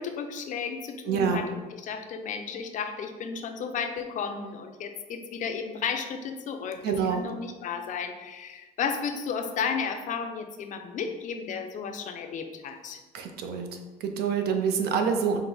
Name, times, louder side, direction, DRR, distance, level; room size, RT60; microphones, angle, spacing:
voice 1, 0.0-13.0, left 6 dB, 50° left, 6 dB, 0.5 m, -33 dB
voice 2, 1.1-1.4 6.8-7.3 13.1-13.7 14.0-15.4, right 6 dB, 70° right, 6 dB, 0.5 m, -26 dB
4.5 x 2.0 x 3.8 m, 1.2 s
cardioid pair, 110°, 17 cm